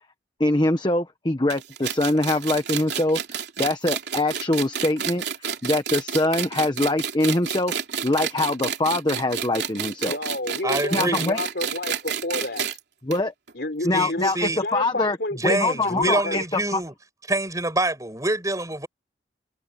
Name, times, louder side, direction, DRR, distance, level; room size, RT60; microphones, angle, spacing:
voice 1, 0.4-7.7 8.0-10.2 10.9-11.4 13.0-13.3 13.8-15.2 15.4-16.8, left 2 dB, 25° left, 1.1 m, -24 dB
sound 1, 1.5-12.8 13.1-13.2 13.5-13.6 14.4-14.5, right 8 dB, 65° right, 3.1 m, -30 dB
voice 2, 10.0-12.7 13.5-15.6 15.8-16.4, left 1 dB, 60° left, 4.4 m, -30 dB
voice 3, 10.6-11.3 13.9-14.6 15.3-16.9 17.3-18.9, right 2 dB, 20° right, 6.1 m, -26 dB
head